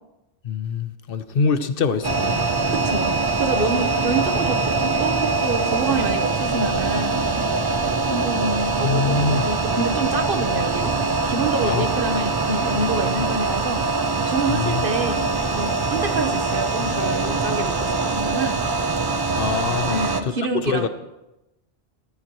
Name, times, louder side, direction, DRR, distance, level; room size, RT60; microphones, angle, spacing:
voice 1, 0.4-2.4 8.8-9.5 11.6-11.9 14.5-14.8 19.4-20.3 20.6-20.9, left 5 dB, 60° left, 11 dB, 0.9 m, -24 dB
sound 1, 2.0-20.2, right 3 dB, 30° right, 0.5 m, -23 dB
voice 2, 2.7-3.1 3.4-7.2 8.1-11.0 11.2-13.8 14.3-18.6 19.9-20.9, right 3 dB, 60° right, 6 dB, 1.3 m, -27 dB
sound 2, 5.2-18.6, left 1 dB, 85° right, 2.8 m, -42 dB
16.0 x 14.0 x 3.0 m, 0.95 s
omnidirectional pair, 1.1 m